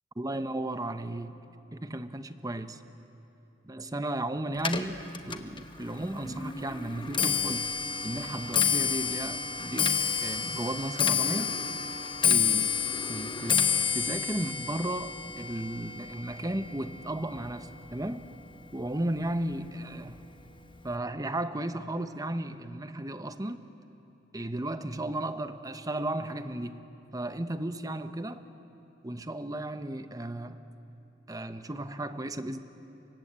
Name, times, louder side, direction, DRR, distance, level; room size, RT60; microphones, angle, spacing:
voice 1, 0.2-1.4 1.7-2.8 3.6-5.0 5.2-9.9 10.2-11.6 12.3-12.7 13.1-13.6 13.9-18.3 18.7-20.3 20.8-23.6 24.3-26.8 27.1-28.4 29.0-30.6 31.3-32.6, right 1 dB, 20° right, 10 dB, 0.9 m, -34 dB
Clock, 4.6-17.9 18.2-18.7 19.5-19.6 19.9-20.3 20.6-20.7, left 7 dB, 25° left, 1.1 m, -30 dB
28.5 x 24.5 x 8.2 m, 2.9 s
head